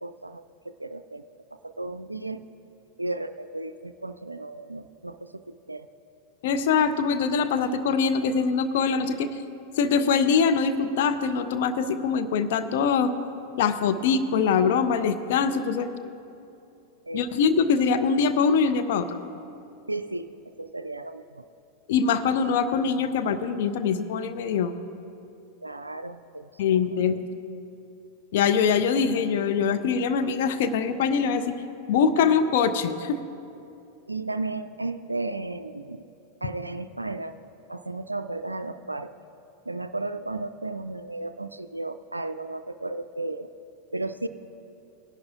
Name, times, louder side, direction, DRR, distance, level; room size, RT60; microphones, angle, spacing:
voice 1, 0.0-1.2 1.5-2.4 3.0-5.9 17.1-17.2 19.9-20.3 20.6-21.4 25.6-26.5 26.9-27.2 34.1-36.0 36.4-37.4 37.7-39.1 39.7-43.5 43.9-44.3, right 2 dB, 85° right, 11 dB, 0.3 m, -34 dB
voice 2, 6.4-9.3 9.8-13.1 13.6-15.9 17.1-19.2 21.9-24.7 26.6-27.2 28.3-31.4 31.9-33.2, left 6 dB, 55° left, 9 dB, 0.6 m, -23 dB
19.0 x 11.0 x 2.4 m, 2.7 s
figure-of-eight pair, 90°, 0 cm